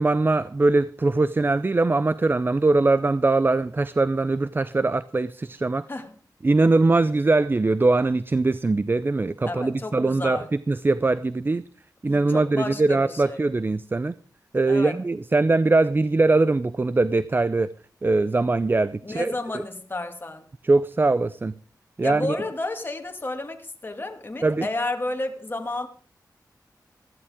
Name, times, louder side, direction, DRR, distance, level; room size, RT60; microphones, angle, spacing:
voice 1, 0.0-5.9 6.4-11.6 12.0-14.1 14.5-17.7 18.0-19.6 20.6-21.5 22.0-22.4 24.4-24.7, right 3 dB, 30° right, 0.5 m, -22 dB
voice 2, 9.4-10.5 12.1-13.4 14.7-15.0 19.0-20.5 22.0-25.9, left 2 dB, 30° left, 2.3 m, -31 dB
15.5 x 14.0 x 3.6 m
wide cardioid pair, 95°, 7 cm